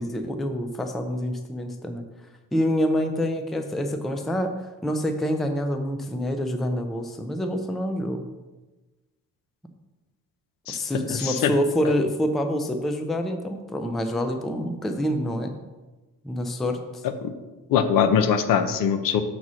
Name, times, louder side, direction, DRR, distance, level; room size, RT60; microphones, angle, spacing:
voice 1, 0.0-2.0 2.5-4.5 4.8-8.2 10.7-15.5 16.2-17.0, equal, ahead, 5 dB, 0.3 m, -26 dB
voice 2, 11.1-11.5 17.2-17.3 17.7-19.2, left 7 dB, 75° left, 9 dB, 0.7 m, -22 dB
6.1 x 4.1 x 6.1 m, 1.2 s
cardioid pair, 175°, 33 cm